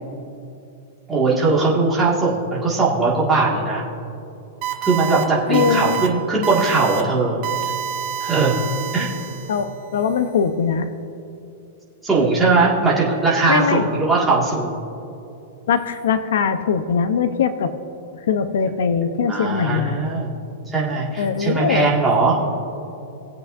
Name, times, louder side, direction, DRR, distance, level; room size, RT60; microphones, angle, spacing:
voice 1, 1.1-3.8 4.9-7.4 8.2-8.6 8.9-9.1 12.0-14.7 19.3-20.3 20.7-22.4, right 3 dB, 10° right, -6 dB, 2.0 m, -19 dB
sound 1, 4.6-5.2 5.5-6.1 6.4-7.0 7.4-9.8, right 10 dB, 35° right, 1.1 m, -27 dB
voice 2, 5.5-6.0 9.5-10.9 13.5-13.9 15.7-17.7 18.1-20.0 21.2-21.9, left 6 dB, 75° left, 10 dB, 0.7 m, -21 dB
20.0 x 8.3 x 2.6 m, 2.7 s
supercardioid pair, 165°, 0 cm